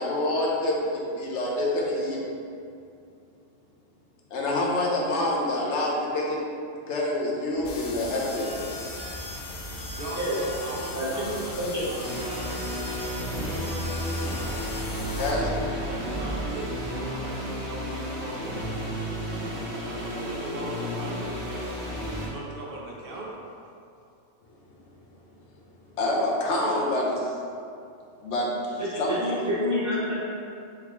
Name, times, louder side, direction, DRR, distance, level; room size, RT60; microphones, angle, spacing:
voice 1, 0.0-2.2 4.3-6.4 6.9-8.6 15.2-15.5 26.0-27.3 28.2-29.3, left 1 dB, 85° left, -3 dB, 1.1 m, -27 dB
sound 1, 7.6-15.3, left 2 dB, 60° left, 0.7 m, -39 dB
sound 2, 7.6-16.4, equal, 35° left, 1.6 m, -39 dB
voice 2, 9.9-12.0 12.3-13.8 15.1-18.7 19.8-21.8 22.2-23.3, right 2 dB, 60° right, -3 dB, 0.8 m, -40 dB
voice 3, 10.9-11.3 11.5-11.9 28.8-30.1, equal, 15° right, -10 dB, 1.2 m, -28 dB
sound 3, 12.0-22.3, equal, 75° right, 1.3 m, -32 dB
4.3 x 3.9 x 3.0 m, 2.5 s
omnidirectional pair, 1.1 m